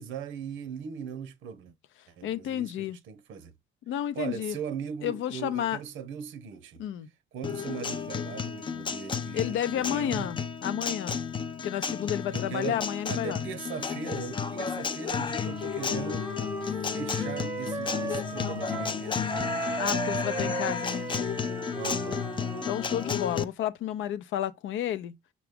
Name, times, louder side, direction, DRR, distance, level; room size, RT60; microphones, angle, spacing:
voice 1, 0.0-1.7 2.1-3.5 4.2-6.8 7.3-10.3 12.3-12.8 13.1-16.3 16.8-20.5 21.7-22.3, right 7 dB, 80° right, 0.7 m, -39 dB
voice 2, 2.2-3.0 3.9-4.6 5.0-5.8 6.8-7.1 9.3-11.2 11.6-13.4 19.8-21.1 22.6-25.2, left 10 dB, 80° left, 0.5 m, -31 dB
Guitar, 7.4-23.4, left 6 dB, 25° left, 0.4 m, -32 dB
Wind instrument woodwind instrument, 15.3-19.0 19.3-23.2, right 3 dB, 15° right, 0.7 m, -36 dB
5.9 x 2.3 x 3.4 m
cardioid pair, 90°, 20 cm